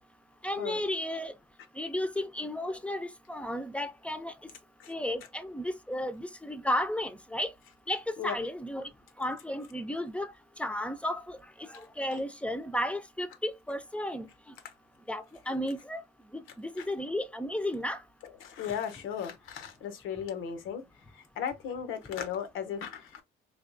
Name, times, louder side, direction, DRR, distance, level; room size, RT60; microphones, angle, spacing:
voice 1, 0.4-1.3 1.8-4.3 4.9-7.5 7.9-8.9 9.2-10.3 10.6-11.4 12.0-14.3 15.1-16.0 16.3-18.0, left 1 dB, 5° left, 0.4 m, -33 dB
voice 2, 18.4-20.8 21.1-23.2, left 8 dB, 85° left, 0.7 m, -36 dB
3.4 x 2.7 x 2.5 m
cardioid pair, 90°, 20 cm